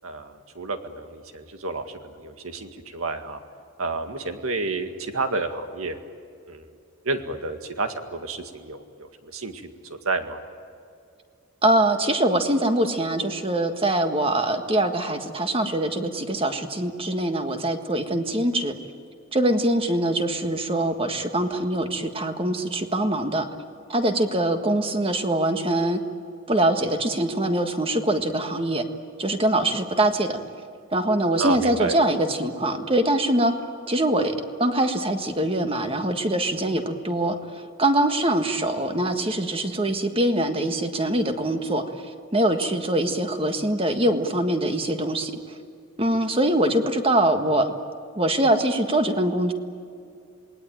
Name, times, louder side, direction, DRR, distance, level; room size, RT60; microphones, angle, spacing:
voice 1, 0.0-3.4 3.8-6.0 6.5-6.7 7.0-10.4 31.4-32.0, right 3 dB, 85° right, 7 dB, 2.0 m, -30 dB
voice 2, 11.6-18.8 19.3-23.5 23.9-26.0 26.5-28.9 29.2-30.4 30.9-33.5 33.9-42.1 42.3-45.6 46.0-47.7 48.1-49.5, right 1 dB, 25° right, 6 dB, 1.6 m, -23 dB
28.0 x 20.0 x 9.0 m, 2.4 s
head